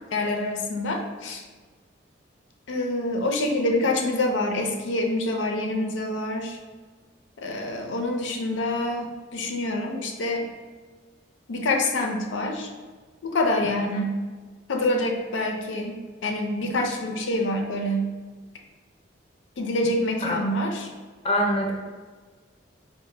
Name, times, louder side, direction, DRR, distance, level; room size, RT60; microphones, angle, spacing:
voice 1, 0.1-1.4 2.7-6.6 7.4-10.5 11.5-12.7 13.2-14.2 14.7-18.1 19.6-20.9, left 1 dB, 90° left, 3 dB, 0.5 m, -26 dB
voice 2, 13.6-14.1 20.2-20.4 21.2-21.7, equal, 30° left, 0 dB, 0.4 m, -25 dB
4.0 x 2.1 x 3.2 m, 1.4 s
head